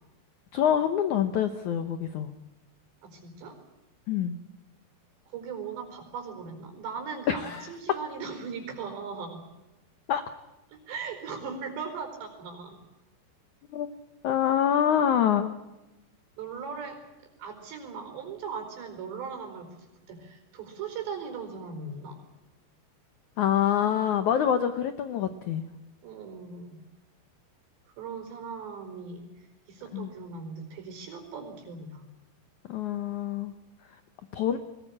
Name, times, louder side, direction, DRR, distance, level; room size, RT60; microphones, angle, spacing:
voice 1, 0.5-2.3 4.1-4.4 7.3-7.7 10.1-10.2 13.7-13.9 14.2-15.6 23.4-25.7 29.9-30.1 32.7-33.5 34.3-34.6, left 9 dB, 75° left, 10 dB, 1.7 m, -26 dB
voice 2, 3.0-3.6 5.3-9.4 10.7-12.8 16.4-22.2 26.0-26.8 28.0-32.0, right 5 dB, 80° right, 5 dB, 6.8 m, -39 dB
21.5 x 19.5 x 8.7 m, 1.0 s
omnidirectional pair, 4.9 m